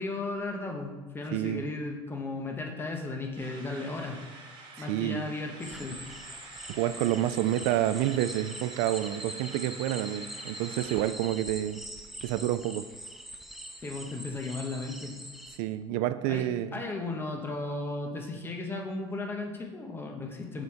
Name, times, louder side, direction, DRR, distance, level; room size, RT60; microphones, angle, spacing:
voice 1, 0.0-4.2 4.8-6.0 13.8-15.1 16.3-16.5 16.7-20.6, left 2 dB, 20° left, 2 dB, 1.0 m, -35 dB
voice 2, 1.3-1.6 4.8-5.3 6.7-11.8 12.2-12.9 15.6-16.7, right 13 dB, 80° right, 13 dB, 0.4 m, -29 dB
sound 1, 3.4-11.1, right 3 dB, 40° right, 1.5 m, -48 dB
sound 2, 5.6-15.6, equal, ahead, 0.5 m, -43 dB
6.9 x 4.5 x 4.9 m, 1.3 s
cardioid pair, 140°, 12 cm